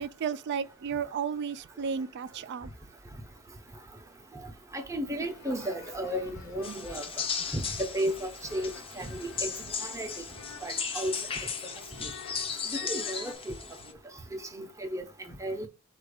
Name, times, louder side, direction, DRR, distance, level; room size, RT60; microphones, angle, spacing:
voice 1, 0.0-2.7 10.5-10.6 12.5-12.6, right 6 dB, 50° right, 0.3 m, -33 dB
voice 2, 4.7-7.1 7.5-9.5 9.8-10.1 10.6-11.2 12.0-12.1 12.7-13.5 14.3-15.7, equal, 15° right, 0.6 m, -34 dB
streetnoise.acordion, 5.1-13.3, left 6 dB, 85° left, 0.8 m, -49 dB
sound 1, 6.6-13.9, left 6 dB, 25° left, 0.6 m, -36 dB
4.2 x 2.5 x 4.8 m
head